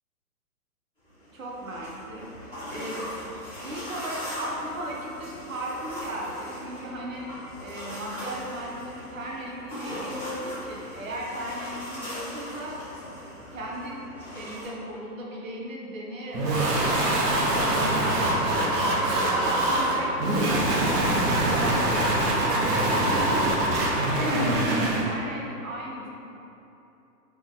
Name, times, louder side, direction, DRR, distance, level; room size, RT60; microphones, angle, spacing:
sound 1, 1.1-14.6, equal, 5° left, 1.4 m, -39 dB
voice 1, 1.3-2.3 2.7-3.1 3.6-7.3 7.6-12.8 13.5-14.0 14.3-17.1 17.5-23.2 23.8-26.1, right 1 dB, 55° right, -3 dB, 0.6 m, -36 dB
sound 2, 16.3-25.0, right 1 dB, 80° right, 1.0 m, -24 dB
3.5 x 3.4 x 2.2 m, 3.0 s
hypercardioid pair, 180°, 48 cm